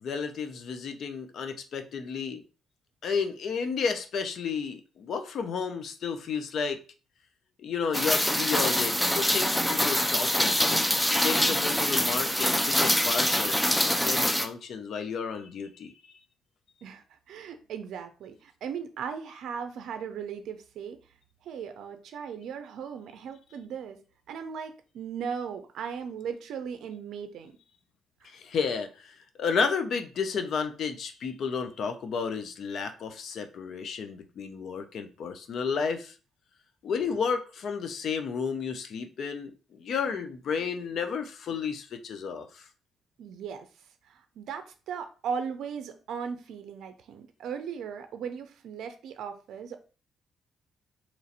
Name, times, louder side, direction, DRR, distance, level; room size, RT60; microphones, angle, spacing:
voice 1, 0.0-2.4 3.0-6.8 7.6-10.8 11.2-15.9 28.2-36.1 36.8-42.7, left 6 dB, 65° left, 7 dB, 0.6 m, -32 dB
Rain, 7.9-14.5, equal, 5° left, 0.4 m, -25 dB
voice 2, 11.4-11.9 16.8-21.0 21.4-24.0 24.3-27.5 28.2-28.3 37.0-37.1 43.2-43.7 44.1-49.8, right 7 dB, 75° right, 8 dB, 0.4 m, -37 dB
3.0 x 2.5 x 4.1 m, 0.35 s
cardioid pair, 90°, 0 cm